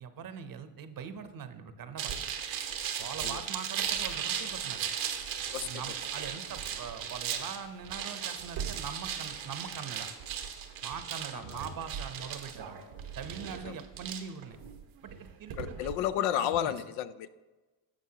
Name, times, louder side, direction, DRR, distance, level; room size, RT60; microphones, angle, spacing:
voice 1, 0.0-2.2 3.0-4.9 5.6-10.1 10.8-12.8 13.1-14.6 15.0-15.8 16.3-16.7, right 7 dB, 45° right, 10 dB, 0.9 m, -42 dB
sound 1, 2.0-15.9, right 8 dB, 75° right, 1.2 m, -37 dB
voice 2, 15.6-17.4, left 11 dB, 80° left, 13 dB, 0.6 m, -32 dB
11.5 x 7.0 x 2.8 m, 1.2 s
supercardioid pair, 80°, 46 cm